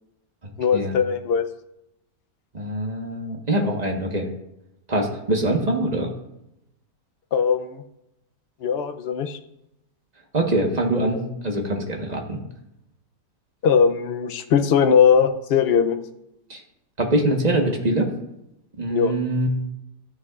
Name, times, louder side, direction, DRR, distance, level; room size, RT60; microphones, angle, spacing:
voice 1, 0.6-1.5 7.3-7.8 8.6-9.4 13.6-16.0 18.9-19.2, left 7 dB, 70° left, 8 dB, 0.6 m, -20 dB
voice 2, 2.5-4.3 4.9-6.1 10.3-12.4 16.5-16.6 17.0-18.1 18.8-19.5, right 1 dB, 30° right, 1 dB, 1.2 m, -23 dB
14.0 x 8.4 x 2.4 m, 0.85 s
omnidirectional pair, 1.8 m